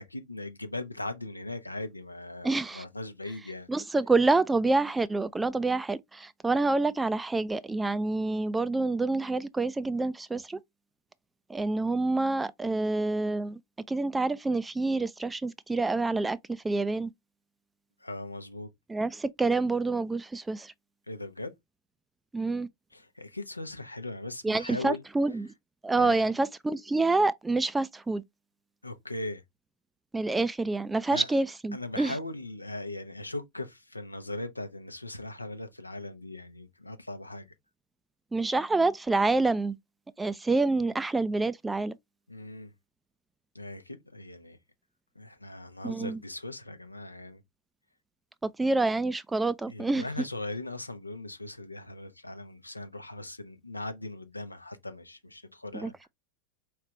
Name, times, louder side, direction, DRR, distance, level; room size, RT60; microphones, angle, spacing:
voice 1, 0.0-3.7 18.0-18.7 21.1-21.5 22.9-25.0 26.0-26.3 28.8-29.4 31.1-31.3 31.7-37.5 42.3-42.7 43.5-44.6 45.1-47.4 49.7-55.9, left 2 dB, 85° left, 0.7 m, -39 dB
voice 2, 2.4-2.8 3.7-10.6 11.5-13.6 13.9-17.1 18.9-20.7 22.3-22.7 24.4-25.5 25.8-28.2 30.1-32.2 38.3-39.8 40.2-41.9 45.8-46.2 48.4-50.0 55.7-56.1, right 3 dB, 10° right, 0.3 m, -27 dB
4.7 x 3.3 x 3.2 m
figure-of-eight pair, 90°, 0 cm